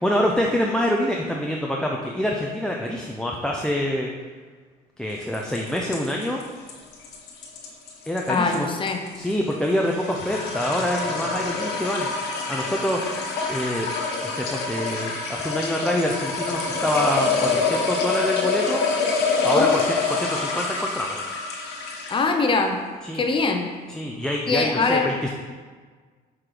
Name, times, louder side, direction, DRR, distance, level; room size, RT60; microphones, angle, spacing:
voice 1, 0.0-4.1 5.0-6.4 8.1-8.7 9.1-12.1 12.5-13.9 14.2-18.8 19.4-21.2 23.0-23.2 23.9-25.3, left 1 dB, 5° left, -1 dB, 0.6 m, -26 dB
sound 1, 5.2-22.4, left 4 dB, 80° left, 1.2 m, -26 dB
voice 2, 8.3-9.0 19.5-19.7 22.1-22.8 23.1-23.7 24.5-25.1, left 3 dB, 30° left, 4 dB, 0.8 m, -22 dB
5.9 x 4.7 x 4.9 m, 1.5 s
cardioid pair, 110°, 17 cm